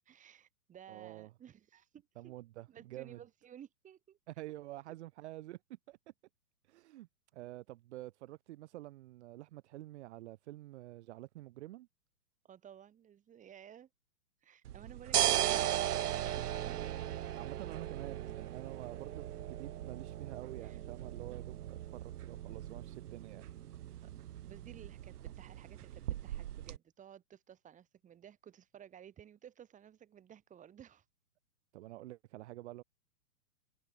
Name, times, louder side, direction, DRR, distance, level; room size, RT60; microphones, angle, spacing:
voice 1, 0.1-2.4 2.7-4.2 12.4-13.9 14.4-17.0 20.6-20.8 24.0-24.1 24.5-31.0, right 9 dB, 15° right, 4.5 m, -55 dB
voice 2, 0.9-1.3 2.2-3.2 4.3-6.0 6.7-11.9 17.3-23.5 23.7-24.1 31.7-32.8, right 16 dB, 45° right, 1.9 m, -48 dB
sound 1, 14.7-26.8, right 12 dB, 70° right, 1.1 m, -37 dB
hypercardioid pair, 150°, 47 cm